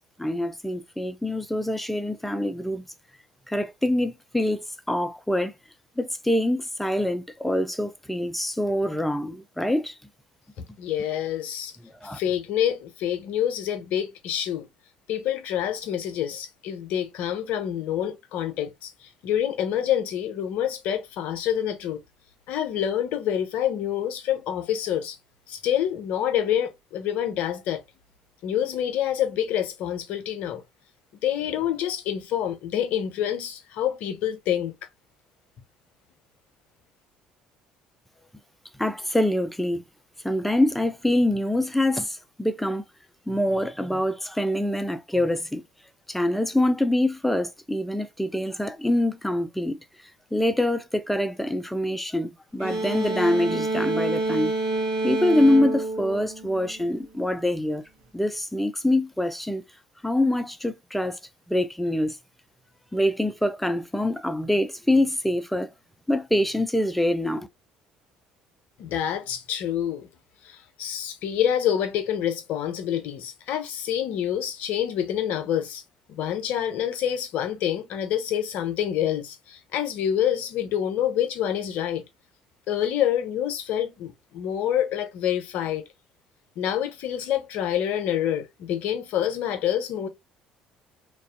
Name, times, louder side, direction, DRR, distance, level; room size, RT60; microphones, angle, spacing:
voice 1, 0.2-2.8 3.5-5.5 6.0-10.0 12.0-12.2 38.8-39.8 40.2-42.8 43.3-45.6 46.1-49.8 50.3-54.5 55.0-57.8 58.1-59.6 60.0-61.2 61.5-62.2 62.9-65.7 66.1-67.5, left 1 dB, 5° left, 0.4 m, -25 dB
voice 2, 10.6-11.7 12.0-14.7 15.1-22.0 22.5-25.2 25.5-27.8 28.4-30.6 31.2-34.7 68.8-70.1 70.4-75.8 76.1-82.0 82.7-85.8 86.6-90.1, left 10 dB, 65° left, 0.5 m, -27 dB
sound 1, 52.6-57.1, right 2 dB, 80° right, 0.7 m, -28 dB
2.4 x 2.2 x 2.5 m
hypercardioid pair, 60°, 3 cm